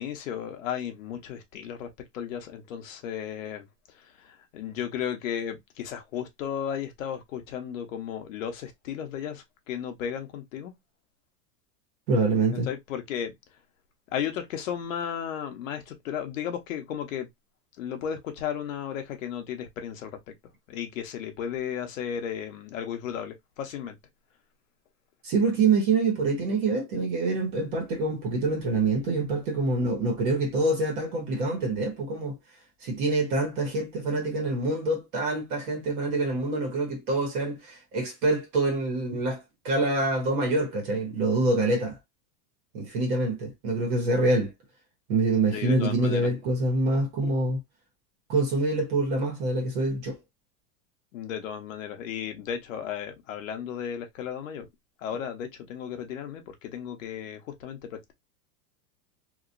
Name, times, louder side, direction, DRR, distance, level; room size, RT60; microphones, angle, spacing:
voice 1, 0.0-3.7 3.9-10.7 12.5-13.3 14.1-17.3 17.8-20.2 20.7-24.0 45.5-46.3 51.1-54.7 55.0-58.1, left 8 dB, 50° left, 0.8 m, -34 dB
voice 2, 12.1-12.7 25.2-32.4 32.8-42.0 42.7-44.5 45.1-47.6 48.3-50.2, right 2 dB, 30° right, 0.9 m, -26 dB
2.9 x 2.7 x 2.4 m
supercardioid pair, 175°, 49 cm